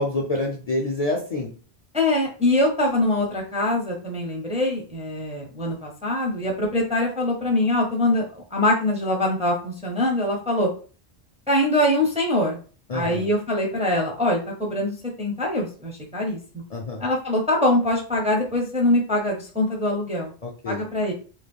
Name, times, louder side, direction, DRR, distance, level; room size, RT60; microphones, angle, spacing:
voice 1, 0.0-1.5 12.9-13.3 16.7-17.0 20.4-20.8, left 2 dB, 45° left, -1 dB, 0.5 m, -27 dB
voice 2, 1.9-10.7 11.5-12.6 12.9-16.6 17.0-20.3 20.7-21.1, left 1 dB, 10° right, 0 dB, 0.5 m, -23 dB
2.9 x 2.2 x 3.5 m, 0.38 s
omnidirectional pair, 1.1 m